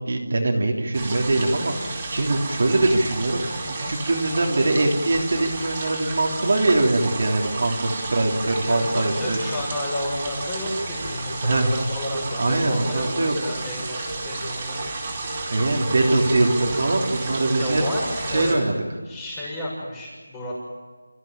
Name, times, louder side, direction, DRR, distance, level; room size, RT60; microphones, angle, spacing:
voice 1, 0.1-3.5 3.9-9.4 11.4-11.7 12.4-13.3 15.5-17.8 18.3-18.8, right 2 dB, 50° right, 0 dB, 3.3 m, -22 dB
sound 1, 0.9-18.5, right 3 dB, 20° right, 4.6 m, -31 dB
voice 2, 8.7-14.8 17.6-18.7 19.1-20.5, left 1 dB, 10° left, -4 dB, 6.6 m, -31 dB
29.5 x 15.0 x 8.9 m, 1.4 s
figure-of-eight pair, 170°, 0 cm